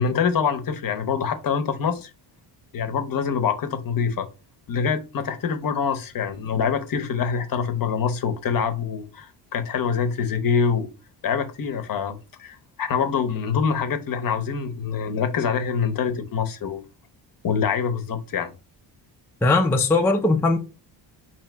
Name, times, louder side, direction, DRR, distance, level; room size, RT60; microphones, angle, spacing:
voice 1, 0.0-2.1 2.7-4.3 4.7-10.9 11.2-16.8 17.4-18.5, left 6 dB, 45° left, 0.7 m, -25 dB
voice 2, 19.4-20.6, left 3 dB, 5° left, 0.4 m, -19 dB
3.9 x 2.8 x 3.2 m
cardioid pair, 110°, 46 cm